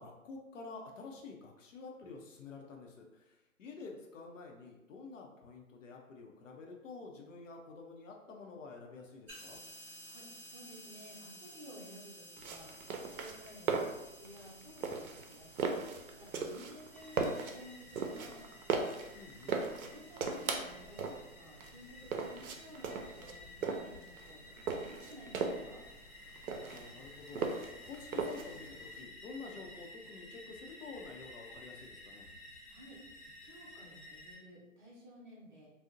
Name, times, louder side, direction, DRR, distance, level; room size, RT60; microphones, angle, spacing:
voice 1, 0.0-3.3 3.6-9.6 19.1-19.6 26.6-27.5 27.8-32.3, left 4 dB, 65° left, 0 dB, 0.6 m, -49 dB
sound 1, 9.3-28.6, equal, 5° right, 0.8 m, -57 dB
voice 2, 9.8-18.8 19.8-25.8 32.7-33.0 33.4-35.7, equal, 35° right, -6 dB, 0.7 m, -55 dB
sound 2, 12.4-29.0, right 4 dB, 80° right, 0.5 m, -38 dB
sound 3, 16.9-34.4, left 2 dB, 85° left, 0.9 m, -54 dB
2.5 x 2.0 x 2.5 m, 0.96 s
hypercardioid pair, 150°, 42 cm